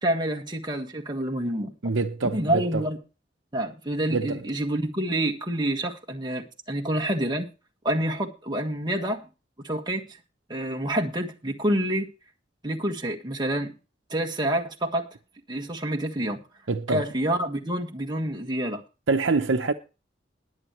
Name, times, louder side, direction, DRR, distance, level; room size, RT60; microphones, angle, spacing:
voice 1, 0.0-1.7 2.3-3.0 3.5-7.5 7.8-9.3 9.6-10.0 10.5-12.1 12.6-13.7 14.1-15.0 15.5-16.4 16.9-18.8, right 1 dB, 25° right, 1.6 m, -27 dB
voice 2, 1.8-2.8 4.1-4.4 16.7-17.0 19.1-19.7, right 3 dB, 85° right, 0.8 m, -25 dB
21.0 x 8.1 x 3.1 m
head